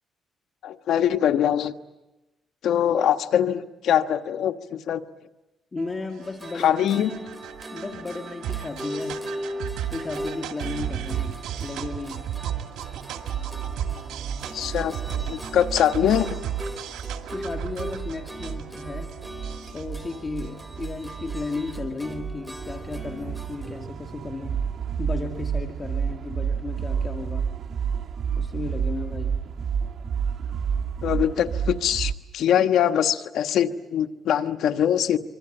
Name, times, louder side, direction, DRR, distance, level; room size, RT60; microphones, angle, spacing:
voice 1, 0.6-1.7 2.6-5.0 6.6-7.1 14.5-16.3 31.0-35.2, left 10 dB, 75° left, 8 dB, 1.3 m, -23 dB
voice 2, 5.7-7.0 7.7-9.3 9.8-11.3 11.6-12.2 17.3-19.1 19.7-24.6 25.0-27.4 28.4-29.3, left 3 dB, 30° left, 4 dB, 2.0 m, -34 dB
sound 1, 5.8-21.3, right 11 dB, 80° right, 2.4 m, -35 dB
sound 2, 6.2-23.8, equal, 10° right, 3.6 m, -39 dB
sound 3, 13.3-32.1, right 7 dB, 55° right, 1.5 m, -31 dB
25.0 x 25.0 x 8.9 m, 1.0 s
cardioid pair, 90°, 0 cm